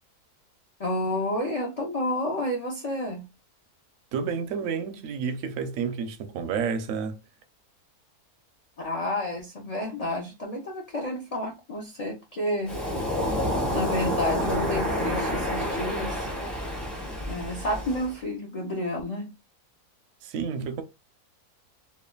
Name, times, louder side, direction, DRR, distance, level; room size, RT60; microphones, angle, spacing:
voice 1, 0.8-3.3 8.8-13.4 13.7-16.3 17.2-19.3, left 1 dB, 50° left, 0.4 m, -30 dB
voice 2, 4.1-7.2 20.2-20.8, right 6 dB, 70° right, 0.9 m, -30 dB
Waves surf, 12.7-18.1, left 1 dB, ahead, 0.5 m, -28 dB
3.1 x 2.2 x 2.2 m
omnidirectional pair, 1.6 m